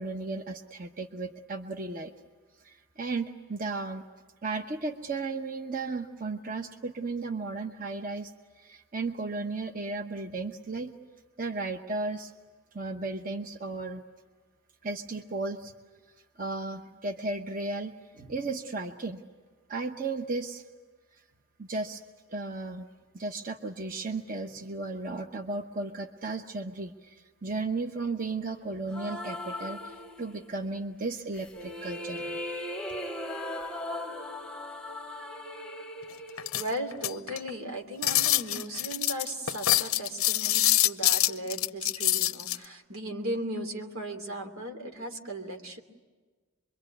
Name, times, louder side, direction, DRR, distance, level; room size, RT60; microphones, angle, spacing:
voice 1, 0.0-2.1 2.6-4.0 4.4-8.3 8.6-10.9 11.4-12.3 12.7-14.0 14.8-15.7 16.4-19.2 19.7-20.6 21.6-22.0 22.3-22.9 23.1-32.4, right 3 dB, 40° right, 6 dB, 1.0 m, -35 dB
sound 1, 28.9-30.6 31.3-37.4, left 1 dB, 5° left, 0.9 m, -38 dB
sound 2, 36.4-37.5 38.0-42.6, left 14 dB, 90° left, 0.7 m, -25 dB
voice 2, 36.5-45.8, right 1 dB, 90° right, 5 dB, 2.9 m, -37 dB
26.0 x 23.0 x 9.2 m, 1.3 s
head